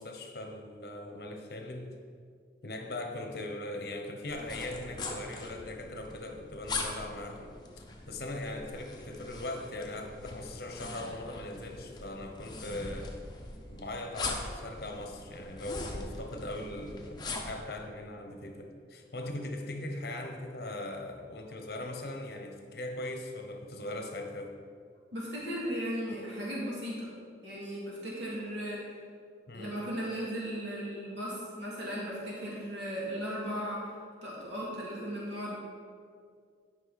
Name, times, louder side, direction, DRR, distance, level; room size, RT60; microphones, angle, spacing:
voice 1, 0.0-2.0 2.6-7.6 8.1-13.1 13.7-24.5 29.5-29.8, left 1 dB, 55° left, 4 dB, 0.9 m, -40 dB
sound 1, 4.3-17.6, left 3 dB, 25° left, 0.8 m, -41 dB
voice 2, 25.1-27.1 27.4-28.8 29.5-33.9 34.2-35.6, equal, 80° right, -6 dB, 2.1 m, -36 dB
11.5 x 5.3 x 4.1 m, 2.2 s
head